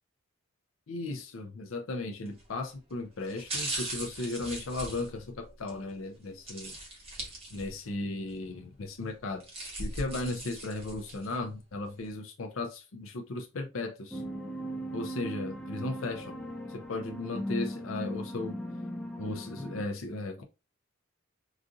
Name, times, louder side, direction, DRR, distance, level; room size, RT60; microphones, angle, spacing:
voice 1, 0.9-6.7 7.5-9.4 9.8-14.2 14.9-16.4 16.7-18.6 19.2-20.4, left 2 dB, 70° left, 0.5 m, -36 dB
sound 1, 2.3-2.5 3.2-5.8 6.5-7.9 8.3-8.4 9.2-11.4 11.8-11.9, right 1 dB, 30° right, 1.2 m, -39 dB
sound 2, 14.1-19.8, equal, 5° left, 0.4 m, -38 dB
3.8 x 2.5 x 2.5 m
head